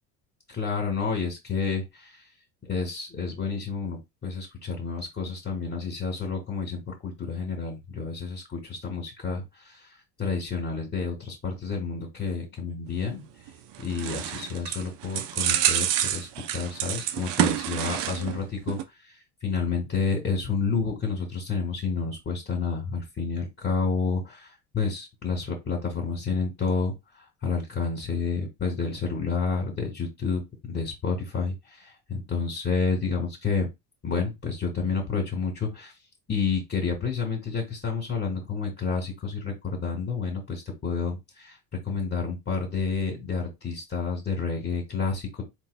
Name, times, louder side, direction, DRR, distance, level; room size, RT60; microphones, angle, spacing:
voice 1, 0.5-2.2 2.6-13.2 13.8-18.8 19.0-33.7 34.0-35.9 36.3-45.4, left 5 dB, 30° left, 1 dB, 2.3 m, -30 dB
sound 1, 13.5-18.4 18.7-18.8, right 11 dB, 65° right, 0.9 m, -28 dB
3.8 x 3.0 x 4.2 m, 0.20 s
supercardioid pair, 85°, 45 cm